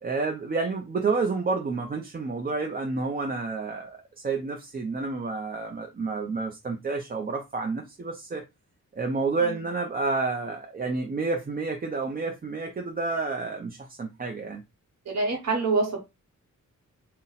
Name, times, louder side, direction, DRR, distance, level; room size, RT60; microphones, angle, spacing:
voice 1, 0.0-8.4 8.9-14.6, right 4 dB, 30° right, 0.4 m, -29 dB
voice 2, 15.0-16.0, right 3 dB, 55° right, 0.9 m, -26 dB
4.0 x 2.1 x 3.9 m
wide cardioid pair, 165°, 32 cm